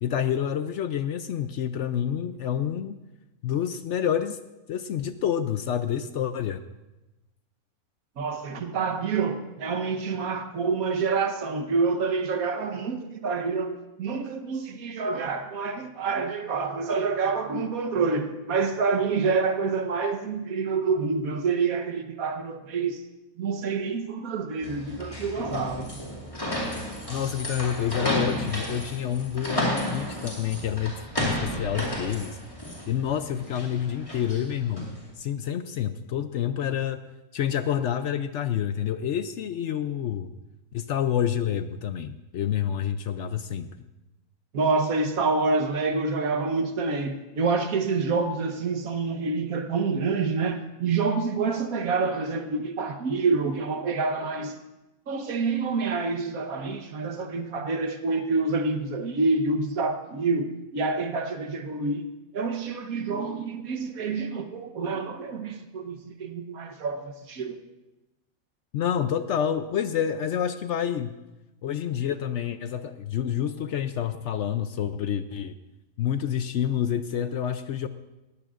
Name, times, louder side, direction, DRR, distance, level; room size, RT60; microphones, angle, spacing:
voice 1, 0.0-3.0 3.4-4.4 4.7-6.6 27.1-32.4 32.9-34.9 35.2-37.0 37.3-40.3 40.7-43.7 68.7-71.2 71.6-75.6 76.0-77.9, left 9 dB, 65° left, 10 dB, 0.8 m, -28 dB
voice 2, 8.2-23.0 23.4-25.9 44.5-54.6 55.1-62.1 62.3-67.6, right 4 dB, 75° right, 7 dB, 1.5 m, -27 dB
sound 1, 24.6-35.0, left 1 dB, 20° left, 2.5 m, -32 dB
19.5 x 15.5 x 2.5 m, 1.0 s
omnidirectional pair, 1.5 m